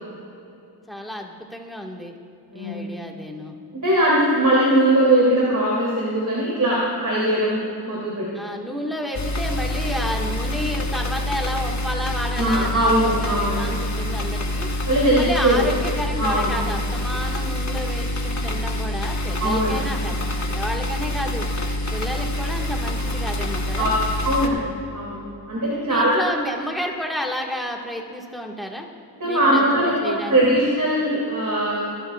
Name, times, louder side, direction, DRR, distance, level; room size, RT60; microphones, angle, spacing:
voice 1, 0.9-2.1 2.5-3.6 8.3-14.7 15.1-21.5 21.9-23.9 25.8-28.9 29.2-30.4, equal, ahead, 0 dB, 1.7 m, -31 dB
voice 2, 3.7-7.6 7.8-8.3 12.4-13.6 14.9-15.7 16.2-16.5 19.4-19.8 23.8-23.9 24.2-24.7 24.9-25.2 25.5-26.2 29.1-31.9, right 1 dB, 45° right, -6 dB, 3.0 m, -20 dB
sound 1, 9.1-24.5, left 1 dB, 40° left, 1.2 m, -26 dB
23.5 x 12.0 x 2.4 m, 2.8 s
wide cardioid pair, 80°, 42 cm